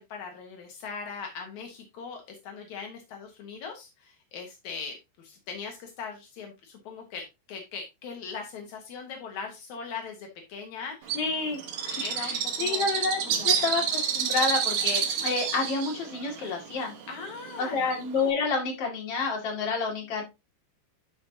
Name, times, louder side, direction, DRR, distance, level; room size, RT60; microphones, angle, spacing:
voice 1, 0.0-11.2 11.9-12.9 13.2-13.6 17.1-17.9, left 5 dB, 75° left, 2 dB, 1.7 m, -40 dB
voice 2, 11.1-11.9 12.2-12.3 12.6-16.9 17.6-20.2, left 4 dB, 40° left, 0 dB, 2.4 m, -29 dB
Bird, 11.1-18.3, right 7 dB, 70° right, 1.8 m, -29 dB
11.5 x 5.3 x 2.8 m, 0.24 s
omnidirectional pair, 5.3 m